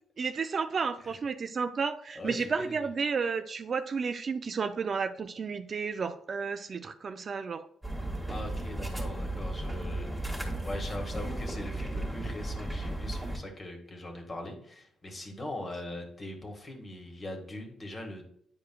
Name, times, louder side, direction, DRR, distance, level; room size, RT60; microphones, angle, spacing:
voice 1, 0.2-7.7, right 5 dB, 45° right, 9 dB, 0.4 m, -32 dB
voice 2, 2.1-2.9 8.3-10.3 10.6-18.2, left 1 dB, 35° left, 2 dB, 1.6 m, -41 dB
sound 1, 7.8-13.4, right 1 dB, 5° right, 1.6 m, -35 dB
9.3 x 4.8 x 2.3 m, 0.68 s
cardioid pair, 90°, 0 cm